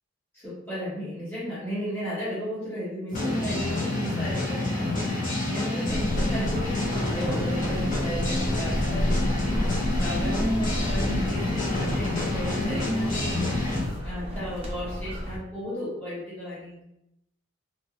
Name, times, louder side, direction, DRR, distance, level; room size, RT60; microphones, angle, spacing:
voice 1, 0.3-13.6 14.0-16.8, equal, 10° left, -12 dB, 1.4 m, -35 dB
sound 1, 3.1-13.9, left 2 dB, 45° left, 0.9 m, -28 dB
sound 2, 5.9-15.4, equal, 30° right, 0.6 m, -32 dB
2.9 x 2.8 x 2.5 m, 0.83 s
head